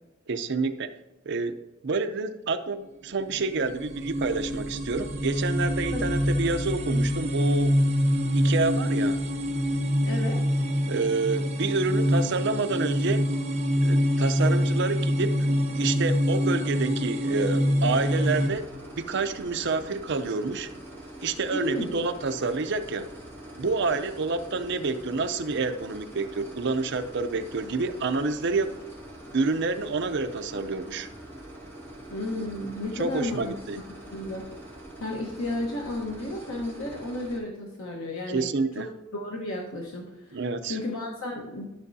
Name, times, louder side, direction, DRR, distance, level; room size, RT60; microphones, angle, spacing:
voice 1, 0.3-0.9 1.3-7.8 8.4-9.2 10.9-13.3 13.8-15.4 15.8-18.7 19.0-20.7 21.2-23.1 23.5-28.7 29.3-31.1 33.0-33.8 38.3-38.9 40.3-40.8, right 3 dB, 55° right, 9 dB, 0.6 m, -28 dB
sound 1, 3.2-18.5, equal, 30° right, 0.8 m, -25 dB
voice 2, 10.1-10.4 21.5-22.0 32.1-33.5 34.1-34.4 35.0-38.5 38.8-38.9 39.1-41.7, left 1 dB, 80° left, -1 dB, 1.1 m, -33 dB
sound 2, 17.8-37.4, right 1 dB, 10° left, 2.3 m, -44 dB
12.5 x 6.8 x 2.7 m, 1.0 s
head